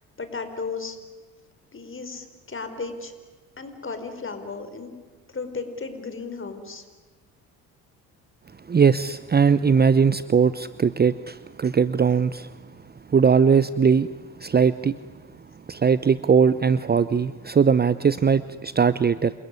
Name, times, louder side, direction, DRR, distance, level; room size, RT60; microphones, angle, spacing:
voice 1, 0.2-1.0 1.7-3.1 3.6-4.9 5.3-6.8, left 4 dB, 25° left, 8 dB, 4.9 m, -34 dB
voice 2, 8.7-12.5 13.1-14.1 14.4-15.0 15.7-19.3, right 6 dB, 20° right, 16 dB, 0.8 m, -20 dB
28.0 x 21.0 x 9.8 m, 1.4 s
hypercardioid pair, 55°, 44 cm